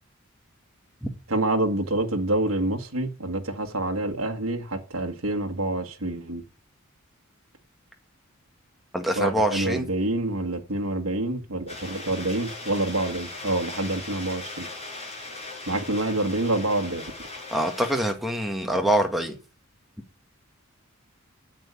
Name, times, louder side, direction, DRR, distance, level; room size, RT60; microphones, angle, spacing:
voice 1, 1.3-6.4 9.1-14.7 15.7-17.1, right 2 dB, 70° right, 1.7 m, -27 dB
voice 2, 8.9-9.8 17.5-19.3, right 1 dB, ahead, 1.7 m, -24 dB
sound 1, 11.7-18.1, left 2 dB, 30° left, 5.1 m, -39 dB
9.1 x 8.1 x 8.3 m
head